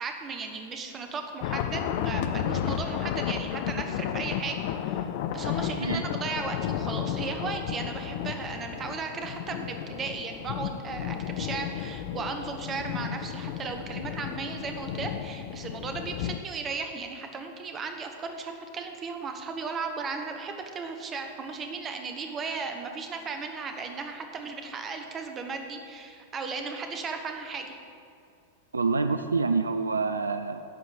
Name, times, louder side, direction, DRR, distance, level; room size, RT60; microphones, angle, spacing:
voice 1, 0.0-5.1 5.3-27.8, right 4 dB, 25° right, 5 dB, 1.1 m, -36 dB
sound 1, 1.4-16.4, left 10 dB, 50° left, 0.5 m, -33 dB
voice 2, 28.7-30.6, right 4 dB, 85° right, 9 dB, 0.4 m, -27 dB
11.0 x 5.0 x 7.6 m, 2.5 s
figure-of-eight pair, 95°, 0 cm